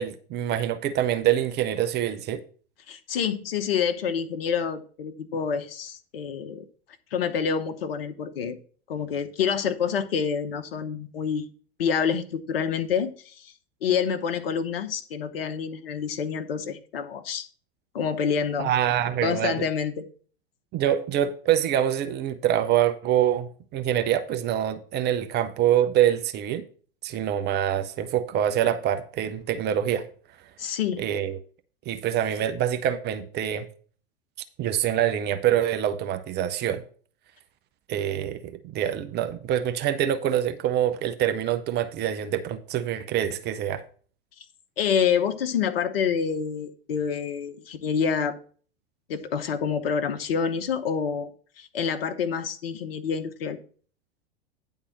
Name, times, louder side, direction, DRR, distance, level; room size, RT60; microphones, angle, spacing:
voice 1, 0.0-2.4 18.6-19.7 20.7-26.6 27.0-30.1 31.0-31.4 31.9-33.7 34.6-36.8 37.9-43.8, right 10 dB, 35° right, 0.7 m, -25 dB
voice 2, 2.9-6.6 7.1-8.6 8.9-11.5 11.8-13.5 13.8-17.5 17.9-18.7 19.2-20.1 30.6-31.1 44.8-48.4 49.1-51.3 51.6-53.6, left 7 dB, 65° left, 0.9 m, -27 dB
9.8 x 3.7 x 7.1 m
figure-of-eight pair, 85°, 31 cm